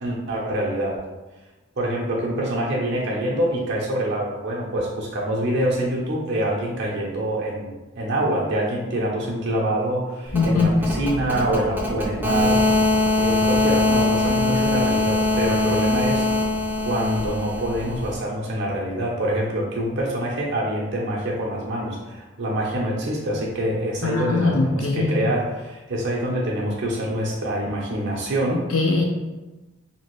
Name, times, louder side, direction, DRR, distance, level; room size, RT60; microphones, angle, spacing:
voice 1, 0.0-1.0 1.8-12.6 13.2-16.3 16.8-28.6, right 1 dB, 55° right, -3 dB, 0.6 m, -25 dB
voice 2, 10.3-10.7 24.0-25.2 28.7-29.1, left 3 dB, 75° left, 0 dB, 0.5 m, -21 dB
sound 1, 10.3-18.2, left 2 dB, 10° right, 0.5 m, -22 dB
2.8 x 2.5 x 3.0 m, 1.1 s
head